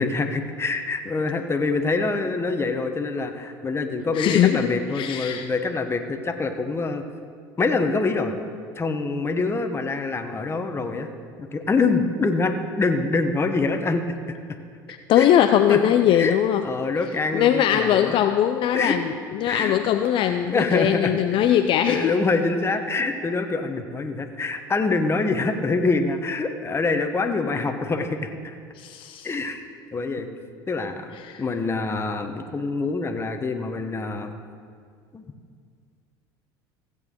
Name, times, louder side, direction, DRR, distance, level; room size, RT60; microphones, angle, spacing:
voice 1, 0.0-7.0 7.6-8.3 8.8-11.1 11.4-14.0 14.3-14.6 15.2-15.3 15.7-15.8 16.1-16.3 16.6-18.2 18.7-19.0 19.5-19.7 20.5-21.2 21.9-28.5 29.2-29.6 29.9-30.3 30.7-34.3 35.1-35.2, left 3 dB, 20° left, 6 dB, 1.0 m, -25 dB
voice 2, 4.1-5.5 14.9-16.6 17.3-22.1 28.8-29.3 31.1-31.4, left 10 dB, 50° left, 8 dB, 0.4 m, -21 dB
15.5 x 8.0 x 3.7 m, 2.1 s
hypercardioid pair, 75°, 11 cm